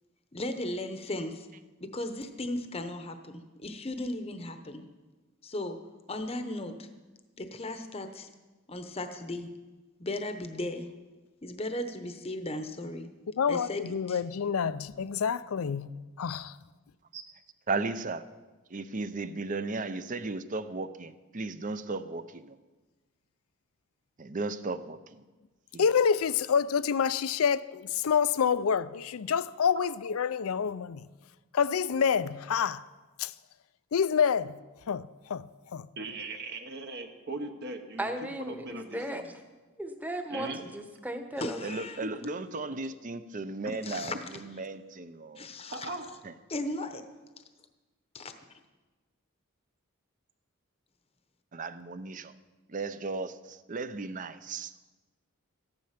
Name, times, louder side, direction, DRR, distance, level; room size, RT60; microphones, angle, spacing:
voice 1, 0.3-1.5 1.8-4.8 5.4-5.8 6.1-6.9 7.4-8.3 8.7-9.5 10.0-10.9 11.4-13.1 13.5-14.2 41.4-42.0 43.7-44.1 45.4-45.9 46.5-47.0 48.1-48.3, left 1 dB, 30° left, 0.8 m, -36 dB
voice 2, 13.4-16.5 25.8-31.1 31.5-32.8 33.2-33.3 33.9-34.6 34.9-35.9, left 7 dB, 80° left, 0.4 m, -28 dB
voice 3, 17.7-18.2 18.7-22.6 24.2-25.2 25.7-25.9 41.6-45.5 46.2-46.4 51.5-52.3 52.7-54.7, right 3 dB, 35° right, 0.6 m, -36 dB
voice 4, 36.0-39.3 40.3-40.6 42.0-42.3 45.7-46.0, right 2 dB, 50° right, 1.1 m, -39 dB
voice 5, 38.0-39.4 39.8-41.6, right 1 dB, 10° right, 1.0 m, -36 dB
14.5 x 10.5 x 5.8 m
head